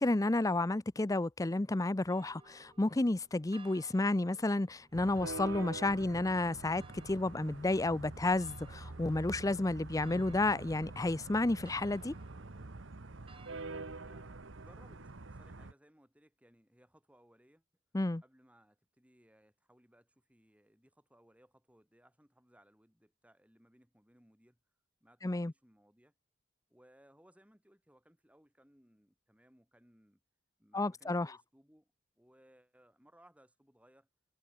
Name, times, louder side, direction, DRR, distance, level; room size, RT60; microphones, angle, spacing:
voice 1, 0.0-12.1 17.9-18.2 25.2-25.5 30.7-31.3, left 2 dB, 15° left, 0.5 m, -31 dB
sound 1, 2.1-13.6, right 4 dB, 25° right, 1.6 m, -61 dB
sound 2, 4.9-15.7, right 3 dB, 65° right, 1.2 m, -46 dB
voice 2, 13.6-17.6 18.2-24.6 25.0-26.1 26.7-30.2 30.6-34.1, equal, 5° right, 7.0 m, -65 dB
head